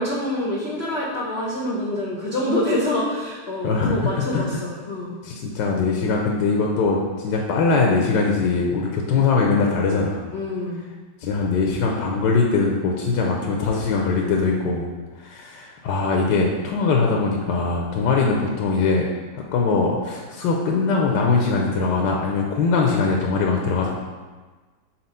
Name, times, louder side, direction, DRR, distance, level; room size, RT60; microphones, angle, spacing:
voice 1, 0.0-5.1 10.3-10.8, left 1 dB, 50° left, -4 dB, 0.8 m, -26 dB
voice 2, 3.6-4.5 5.2-10.2 11.2-14.9 15.2-19.0 19.3-23.9, left 4 dB, 75° left, 0 dB, 1.2 m, -21 dB
4.3 x 4.2 x 5.4 m, 1.4 s
omnidirectional pair, 2.0 m